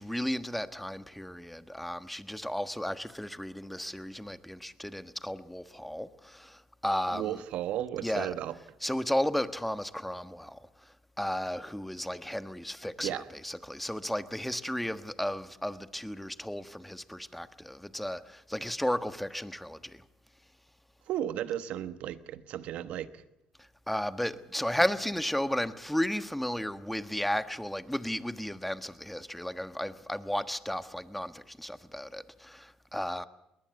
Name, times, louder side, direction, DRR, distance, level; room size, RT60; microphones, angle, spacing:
voice 1, 0.0-7.4 8.0-8.3 8.8-10.6 11.2-20.0 23.9-33.3, equal, 5° left, 1.3 m, -34 dB
voice 2, 7.1-8.5 13.0-13.3 21.1-23.2, right 11 dB, 70° right, 1.1 m, -34 dB
21.5 x 19.0 x 8.1 m
supercardioid pair, 65°, 2 cm